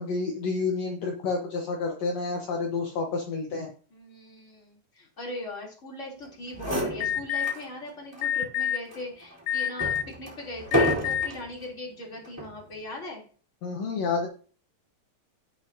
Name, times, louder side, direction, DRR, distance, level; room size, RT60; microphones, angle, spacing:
voice 1, 0.0-3.7 13.6-14.3, left 4 dB, 60° left, 0 dB, 2.3 m, -29 dB
voice 2, 3.9-13.2, left 2 dB, 25° left, -3 dB, 3.5 m, -40 dB
sound 1, 6.2-6.3 6.5-7.7 8.1-8.2 8.9-11.5 12.2-12.6, equal, 5° right, 3.6 m, -30 dB
Alarm, 7.0-7.5 8.2-8.8 9.5-10.1 10.7-11.3, left 10 dB, 90° left, 2.2 m, -27 dB
17.0 x 6.0 x 2.8 m, 0.39 s
omnidirectional pair, 3.5 m